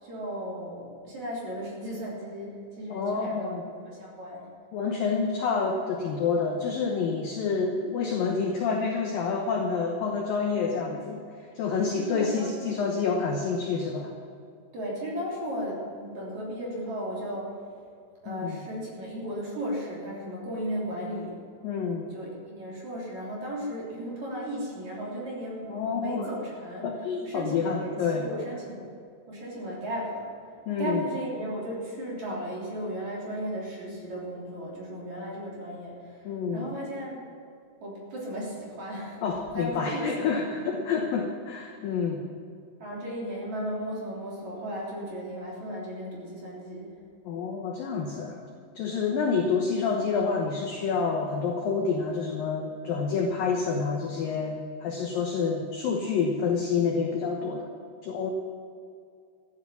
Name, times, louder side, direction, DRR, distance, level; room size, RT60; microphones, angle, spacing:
voice 1, 0.0-4.5 10.7-11.0 11.9-12.5 14.7-17.6 18.2-21.4 22.1-26.8 27.2-28.9 29.3-37.2 37.8-39.2 39.5-40.4 42.8-47.0, equal, 40° right, -5 dB, 4.1 m, -35 dB
voice 2, 2.9-3.6 4.7-14.1 18.3-18.6 21.6-22.1 25.7-26.3 26.8-28.3 30.7-31.0 36.2-36.7 39.2-42.2 47.3-48.4 48.8-57.7 58.0-58.3, left 5 dB, 75° left, 1 dB, 2.0 m, -28 dB
13.5 x 11.0 x 7.1 m, 2.4 s
omnidirectional pair, 5.8 m